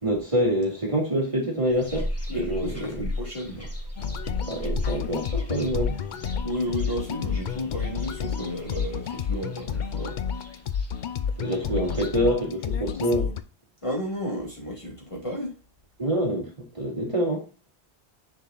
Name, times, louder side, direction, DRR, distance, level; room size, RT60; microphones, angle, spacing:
voice 1, 0.0-2.1 2.4-3.1 4.5-6.0 11.4-13.3 16.0-17.5, equal, 30° right, 2.3 m, -26 dB
sound 1, 1.6-12.1, equal, 15° left, 1.4 m, -37 dB
voice 2, 2.3-3.7 6.4-10.2 13.8-15.6, equal, 30° left, 2.2 m, -32 dB
sound 2, 4.0-13.4, left 7 dB, 55° left, 0.6 m, -30 dB
6.9 x 6.1 x 2.4 m
omnidirectional pair, 1.1 m